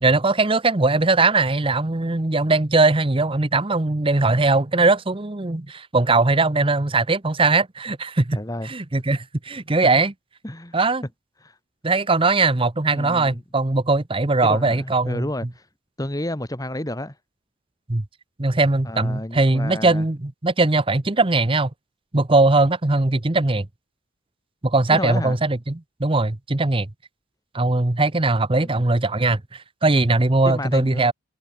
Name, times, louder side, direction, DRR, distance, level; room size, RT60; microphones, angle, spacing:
voice 1, 0.0-8.4 8.6-10.1 10.7-11.0 11.8-15.2 17.9-18.0 18.4-21.7 22.1-23.7 24.6-26.9 27.5-31.1, right 3 dB, 25° right, 0.9 m, -20 dB
voice 2, 8.3-8.7 10.4-10.8 11.4-11.5 12.9-13.4 14.5-15.6 16.0-17.1 18.8-20.0 24.9-25.4 28.6-28.8 30.4-31.1, left 1 dB, 20° left, 1.7 m, -31 dB
head